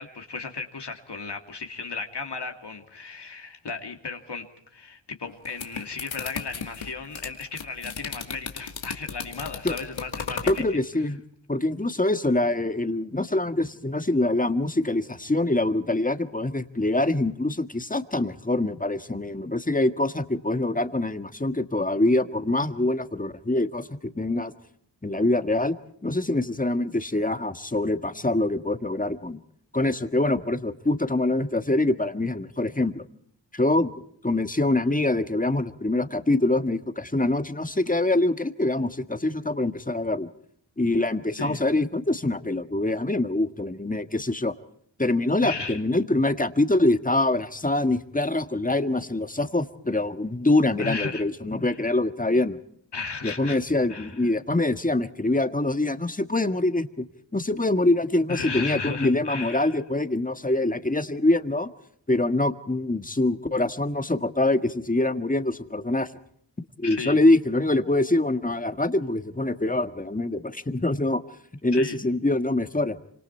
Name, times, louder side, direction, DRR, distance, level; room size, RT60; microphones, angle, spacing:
voice 1, 0.0-10.8 41.4-41.6 45.4-45.8 50.8-51.2 51.6-51.8 52.9-53.6 53.9-54.3 58.3-59.8 66.8-67.2 71.7-72.0, left 4 dB, 60° left, 4 dB, 2.5 m, -35 dB
sound 1, 5.3-10.7, left 6 dB, 90° left, 2.3 m, -35 dB
voice 2, 10.5-11.2 11.5-23.9 24.1-24.5 25.0-25.7 26.0-29.4 29.7-33.0 33.5-33.9 34.2-40.3 40.8-44.5 45.0-52.6 53.2-57.0 57.3-61.7 62.1-66.1 66.8-71.2 71.6-73.0, left 2 dB, 20° left, 9 dB, 1.6 m, -24 dB
27.0 x 26.0 x 4.4 m, 0.66 s
cardioid pair, 55°, 45 cm